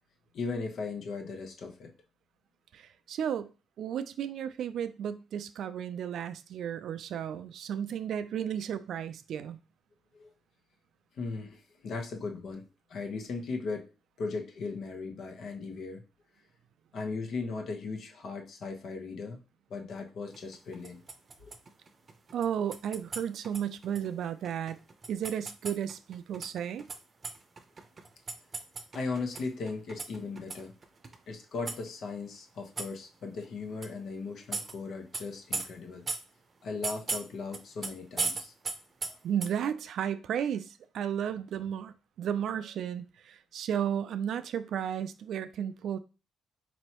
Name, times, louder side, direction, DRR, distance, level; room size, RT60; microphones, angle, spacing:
voice 1, 0.3-1.9 10.1-10.3 11.1-13.9 14.2-16.0 16.9-19.4 19.7-21.0 21.4-21.5 28.9-30.7 31.3-36.0 36.6-38.5 39.1-39.2, left 4 dB, 65° left, 3 dB, 1.0 m, -37 dB
voice 2, 2.7-3.5 3.8-9.6 22.3-24.8 25.1-26.8 39.2-46.0, right 9 dB, 70° right, 12 dB, 0.4 m, -33 dB
sound 1, 20.3-27.0 27.2-29.4 29.7-31.2 31.7-31.9 32.8-32.9 33.4-33.5 33.8-33.9 34.5-34.7 35.1-35.2 35.5-35.7 36.1-36.2 36.8-37.2 37.5-37.9 38.2-39.1 39.4-39.5, right 4 dB, 35° right, 0.7 m, -36 dB
4.3 x 3.1 x 2.9 m, 0.32 s
cardioid pair, 90°, 0 cm